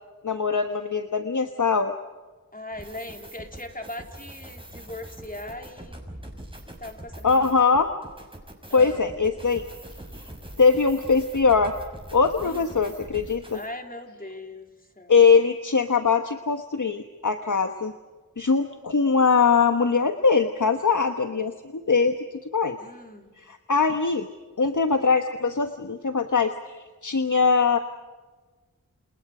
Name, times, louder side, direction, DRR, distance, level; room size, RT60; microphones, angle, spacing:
voice 1, 0.2-1.9 7.2-7.9 8.7-9.6 10.6-11.7 12.1-13.6 15.1-17.9 18.4-22.1 22.5-22.8 23.4-24.3 24.6-27.8, left 5 dB, 60° left, 7 dB, 1.3 m, -22 dB
voice 2, 2.5-6.0 6.7-7.7 8.7-9.0 12.4-12.7 13.5-14.7 15.0-15.1 22.8-23.3, left 1 dB, 25° left, 4 dB, 3.5 m, -39 dB
sound 1, 2.7-13.7, right 1 dB, 15° right, 6.3 m, -43 dB
29.0 x 28.5 x 5.0 m, 1.3 s
wide cardioid pair, 65°, 34 cm